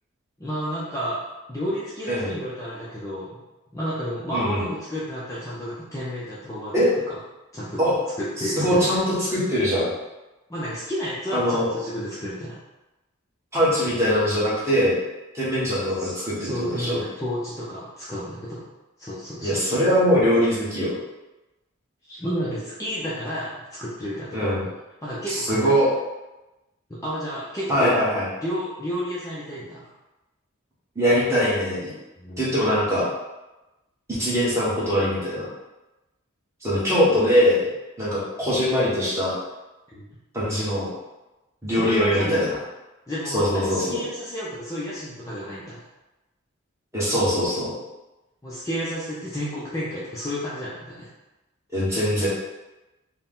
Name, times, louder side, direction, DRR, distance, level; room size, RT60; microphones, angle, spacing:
voice 1, 0.4-1.2 1.5-3.3 3.7-6.7 7.5-7.8 8.2-8.9 10.5-12.6 16.0-16.1 16.4-18.6 19.0-19.6 22.1-24.6 25.0-25.7 26.9-28.0 28.4-29.9 32.2-32.5 39.9-40.1 41.7-42.3 43.1-45.8 48.4-51.1, equal, 15° left, -8 dB, 0.6 m, -31 dB
voice 2, 4.3-4.6 6.7-6.9 7.8-7.9 8.4-9.9 11.3-11.7 13.5-15.0 15.3-17.0 19.4-20.9 24.3-24.6 25.3-25.9 27.7-28.2 30.9-31.9 32.4-33.1 34.1-35.5 36.6-37.6 38.0-39.3 40.3-40.9 41.6-42.5 43.3-44.0 46.9-47.7 51.7-52.3, equal, 15° right, -9 dB, 1.4 m, -22 dB
4.5 x 2.2 x 3.7 m, 1.0 s
head